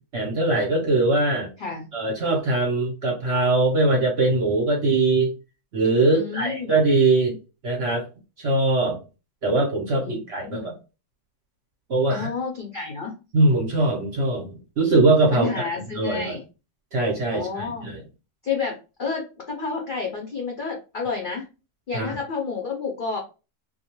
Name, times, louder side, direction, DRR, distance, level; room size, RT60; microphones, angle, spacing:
voice 1, 0.1-1.5 1.9-5.3 5.7-7.4 7.6-8.1 8.4-9.0 9.4-10.7 11.9-12.3 13.3-16.4 16.9-18.0 21.9-22.1, right 2 dB, 55° right, 0 dB, 0.8 m, -21 dB
voice 2, 6.1-6.8 10.0-10.7 12.1-13.2 15.3-16.4 17.3-17.9 18.4-21.5 21.9-23.2, left 5 dB, 65° left, 0 dB, 0.5 m, -30 dB
2.4 x 2.2 x 2.9 m, 0.30 s
omnidirectional pair, 1.7 m